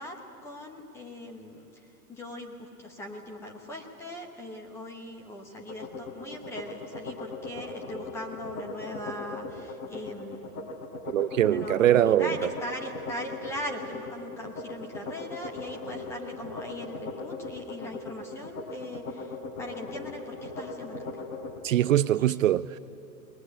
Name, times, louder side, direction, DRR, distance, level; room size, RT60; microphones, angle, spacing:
voice 1, 0.0-10.7 11.4-21.2 22.2-22.4, left 1 dB, 5° left, 0.9 m, -40 dB
sound 1, 5.6-21.6, left 3 dB, 60° left, 3.5 m, -39 dB
voice 2, 11.1-12.3 21.6-22.8, right 12 dB, 60° right, 0.5 m, -22 dB
21.0 x 19.5 x 9.8 m
hypercardioid pair, 170°, 45 cm